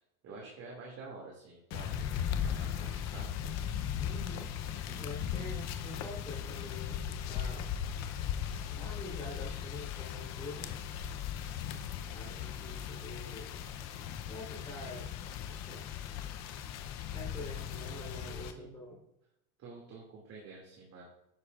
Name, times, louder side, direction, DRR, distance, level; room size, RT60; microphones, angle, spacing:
voice 1, 0.2-3.3 4.9-5.0 11.5-11.9 18.1-18.8 19.6-21.1, right 3 dB, 35° right, -3 dB, 2.4 m, -50 dB
sound 1, 1.7-18.5, left 9 dB, 35° left, 0.7 m, -38 dB
voice 2, 4.0-4.5 5.0-7.7 8.7-10.7 12.1-13.6 14.3-15.1 15.5-15.8 17.1-19.0, left 2 dB, 10° left, -5 dB, 3.5 m, -46 dB
10.5 x 10.0 x 2.5 m, 0.87 s
supercardioid pair, 145°, 43 cm